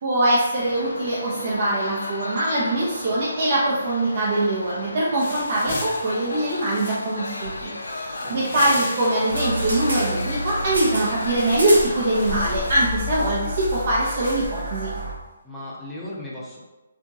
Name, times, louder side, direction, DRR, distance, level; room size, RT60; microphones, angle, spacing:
voice 1, 0.0-14.9, right 1 dB, 45° right, -7 dB, 0.6 m, -23 dB
sound 1, 0.6-12.9, left 2 dB, 80° left, 0.4 m, -35 dB
sound 2, 5.2-15.1, left 2 dB, 50° left, 0.7 m, -39 dB
voice 2, 8.2-8.8 15.4-16.6, left 1 dB, 5° left, -7 dB, 0.6 m, -36 dB
sound 3, 9.3-15.1, equal, 90° right, 0.6 m, -29 dB
2.9 x 2.5 x 2.4 m, 1.1 s
figure-of-eight pair, 150°, 0 cm